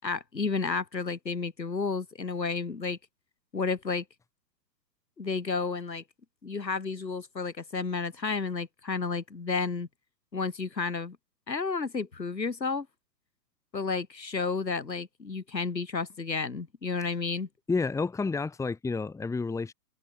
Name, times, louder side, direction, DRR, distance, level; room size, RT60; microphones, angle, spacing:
voice 1, 0.0-3.0 3.5-4.0 5.2-6.0 6.4-9.9 10.3-11.2 11.5-12.9 13.7-17.5, left 4 dB, 90° left, 7.2 m, -31 dB
voice 2, 17.7-19.7, left 4 dB, 5° left, 2.5 m, -30 dB
open air
hypercardioid pair, 130°, 49 cm